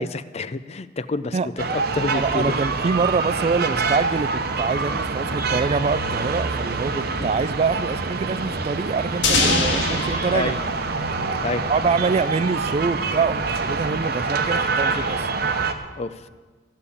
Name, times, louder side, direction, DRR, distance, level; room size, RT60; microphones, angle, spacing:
voice 1, 0.0-2.6 5.2-5.4 7.1-7.3 9.7-10.0 10.3-10.6 11.4-11.7 16.0-16.3, left 2 dB, 35° left, 14 dB, 0.4 m, -29 dB
sound 1, 1.6-15.7, right 4 dB, 55° right, 0.9 m, -26 dB
voice 2, 2.1-10.5 11.7-15.3, right 4 dB, 35° right, 15 dB, 0.3 m, -25 dB
sound 2, 9.2-12.0, left 3 dB, 65° left, 2.0 m, -24 dB
14.5 x 6.9 x 8.4 m, 1.4 s
head